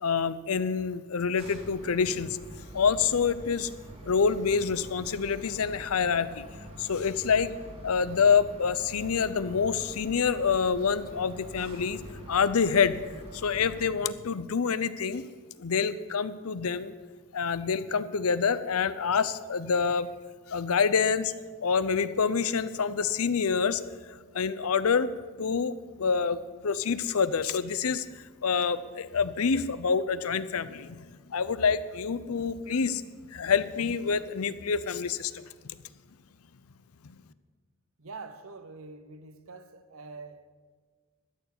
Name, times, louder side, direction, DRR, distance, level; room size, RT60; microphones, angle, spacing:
voice 1, 0.0-2.4 2.7-3.7 4.1-6.5 6.8-7.5 7.8-12.0 12.3-13.0 13.4-15.2 15.6-16.9 17.3-20.1 20.5-21.3 21.6-23.8 24.1-25.1 25.4-26.4 26.6-28.1 28.4-33.0 33.3-35.3 37.0-37.1, left 6 dB, 80° left, 0.6 m, -27 dB
sound 1, 1.4-13.9, equal, 25° right, 1.8 m, -46 dB
voice 2, 38.0-40.5, right 3 dB, 70° right, 0.9 m, -45 dB
13.0 x 7.0 x 8.3 m
head